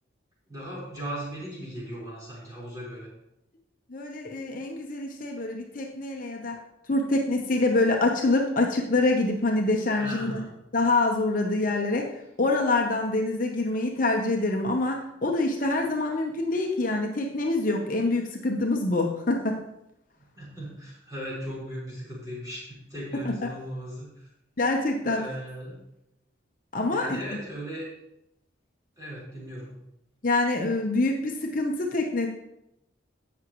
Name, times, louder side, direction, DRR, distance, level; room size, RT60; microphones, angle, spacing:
voice 1, 0.5-3.1 10.0-10.5 20.4-24.3 25.0-25.8 26.9-27.8 29.0-29.7, equal, 20° right, -7 dB, 4.1 m, -37 dB
voice 2, 3.9-6.6 6.9-10.4 10.7-12.1 12.4-19.6 23.2-23.5 24.6-25.2 26.7-27.2 30.2-32.3, left 2 dB, 45° left, 1 dB, 0.8 m, -25 dB
16.0 x 6.0 x 3.1 m, 0.85 s
head